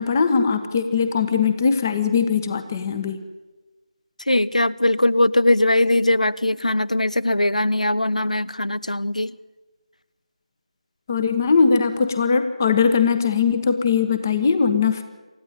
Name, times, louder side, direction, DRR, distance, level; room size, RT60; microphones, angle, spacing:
voice 1, 0.0-3.2 11.1-15.0, left 5 dB, 25° left, 10 dB, 1.3 m, -20 dB
voice 2, 4.3-9.3, left 1 dB, 80° left, 20 dB, 0.9 m, -20 dB
28.0 x 15.0 x 9.2 m, 1.3 s
figure-of-eight pair, 160°, 4 cm